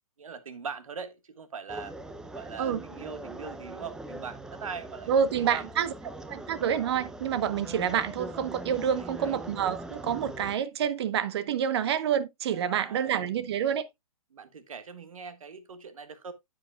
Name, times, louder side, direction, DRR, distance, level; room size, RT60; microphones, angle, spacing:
voice 1, 0.2-2.0 2.3-5.2 5.5-5.7 8.9-9.4 12.5-13.2 14.3-16.3, right 5 dB, 70° right, 1.4 m, -41 dB
sound 1, 1.7-10.6, right 1 dB, 5° right, 0.5 m, -42 dB
voice 2, 5.1-5.9 6.3-13.9, right 8 dB, 45° right, 0.8 m, -28 dB
9.7 x 8.0 x 2.2 m
figure-of-eight pair, 125°, 18 cm